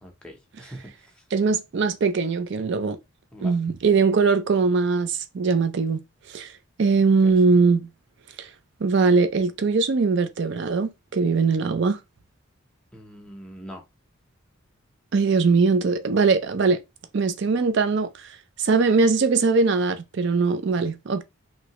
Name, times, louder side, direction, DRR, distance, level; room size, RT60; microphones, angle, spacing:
voice 1, 0.0-1.3 3.3-3.6 6.9-7.3 12.9-13.8, equal, 5° left, 0.6 m, -43 dB
voice 2, 1.3-3.0 3.4-6.0 6.3-6.5 6.8-7.9 8.4-8.5 8.8-12.0 15.1-16.8 17.1-18.3 18.6-21.2, right 4 dB, 55° right, 0.4 m, -21 dB
3.1 x 2.7 x 2.9 m
head